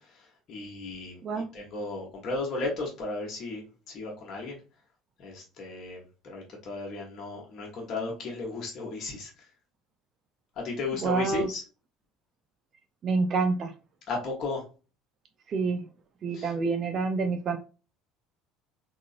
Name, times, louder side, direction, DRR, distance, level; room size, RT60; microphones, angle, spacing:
voice 1, 0.5-1.2 1.5-3.6 3.9-4.6 5.2-9.3 10.6-11.6 14.1-14.6 16.3-16.5, left 3 dB, 45° left, 1.2 m, -34 dB
voice 2, 1.2-1.5 11.0-11.5 13.0-13.7 15.5-15.9 16.2-17.6, right 4 dB, 40° right, 0.5 m, -27 dB
3.7 x 3.0 x 2.5 m
figure-of-eight pair, 60°, 0 cm